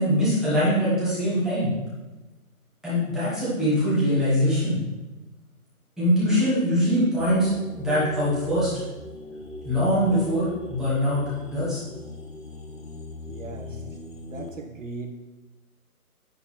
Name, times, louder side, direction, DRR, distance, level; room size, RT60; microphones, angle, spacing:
voice 1, 0.0-1.8 2.8-4.8 6.0-7.5 7.8-8.7 9.6-11.2 11.5-11.8 13.6-13.8, equal, ahead, -11 dB, 1.0 m, -23 dB
sound 1, 7.2-14.5, left 2 dB, 90° left, 2.3 m, -39 dB
voice 2, 13.3-13.8 14.3-15.1, right 4 dB, 55° right, 4 dB, 1.2 m, -38 dB
10.5 x 9.7 x 3.1 m, 1.1 s
hypercardioid pair, 165°, 45 cm